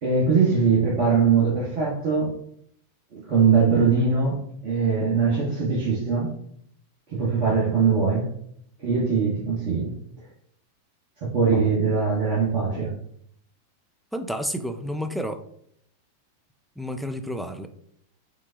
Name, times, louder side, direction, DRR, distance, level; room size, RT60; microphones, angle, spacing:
voice 1, 0.0-2.3 3.1-6.3 7.1-8.3 8.8-10.0 11.2-12.9, right 5 dB, 45° right, -5 dB, 1.3 m, -22 dB
voice 2, 14.1-15.4 16.8-17.7, equal, ahead, 7 dB, 0.5 m, -30 dB
5.5 x 2.4 x 3.7 m, 0.67 s
figure-of-eight pair, 90°, 0 cm